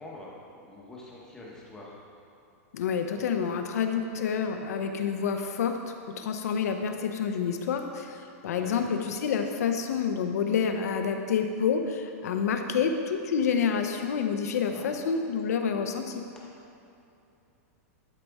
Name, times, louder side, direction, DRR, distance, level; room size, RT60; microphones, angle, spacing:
voice 1, 0.0-2.0 3.1-3.5 8.6-8.9 14.6-15.0, left 2 dB, 5° left, -4 dB, 0.7 m, -46 dB
voice 2, 2.7-5.8 6.1-16.3, left 6 dB, 85° left, 6 dB, 0.7 m, -28 dB
11.5 x 4.1 x 3.5 m, 2.7 s
supercardioid pair, 180°, 8 cm